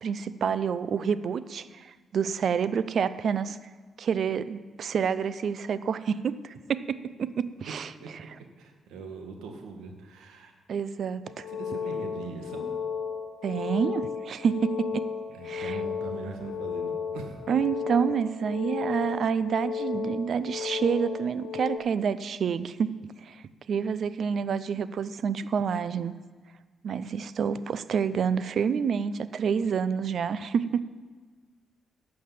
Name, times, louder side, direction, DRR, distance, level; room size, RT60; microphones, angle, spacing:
voice 1, 0.0-3.6 4.0-7.9 10.7-11.5 13.4-15.1 15.4-15.8 17.5-22.9 23.2-26.1 26.8-30.8, right 7 dB, 65° right, 15 dB, 0.5 m, -28 dB
voice 2, 8.6-10.5 11.5-12.8 15.3-17.4, right 4 dB, 85° right, 4 dB, 1.6 m, -41 dB
sound 1, 11.3-21.8, left 7 dB, 80° left, 1.3 m, -34 dB
11.5 x 6.5 x 7.6 m, 1.4 s
supercardioid pair, 60°, 0 cm